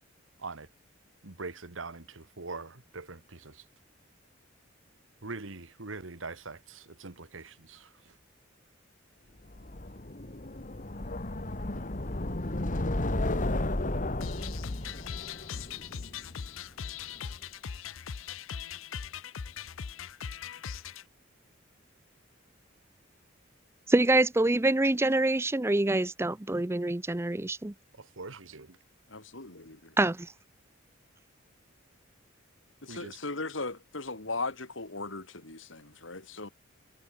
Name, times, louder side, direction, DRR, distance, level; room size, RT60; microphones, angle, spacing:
voice 1, 1.2-3.6 5.2-8.1 28.0-28.8 32.9-33.2, right 3 dB, 75° right, 1.6 m, -43 dB
sound 1, 9.5-16.6, left 1 dB, 40° left, 1.8 m, -33 dB
sound 2, 14.2-21.0, left 7 dB, 85° left, 0.6 m, -40 dB
voice 2, 23.9-27.7 30.0-30.3, right 2 dB, 15° right, 0.6 m, -25 dB
voice 3, 29.1-29.9 32.8-36.5, left 3 dB, 70° left, 3.1 m, -38 dB
head